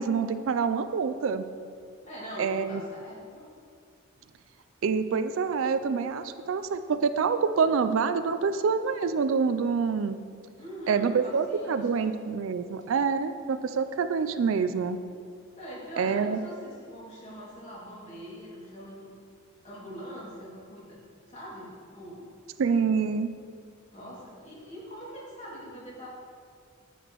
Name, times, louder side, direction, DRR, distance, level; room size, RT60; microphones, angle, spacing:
voice 1, 0.0-1.5 2.4-2.8 4.8-10.2 10.9-15.0 16.0-16.4 22.6-23.3, right 5 dB, 70° right, 11 dB, 0.4 m, -26 dB
voice 2, 2.0-3.4 10.6-12.1 15.6-19.0 19.6-21.0 21.3-22.3 23.9-26.1, equal, 35° left, -6 dB, 2.3 m, -43 dB
10.0 x 8.4 x 3.0 m, 2.2 s
head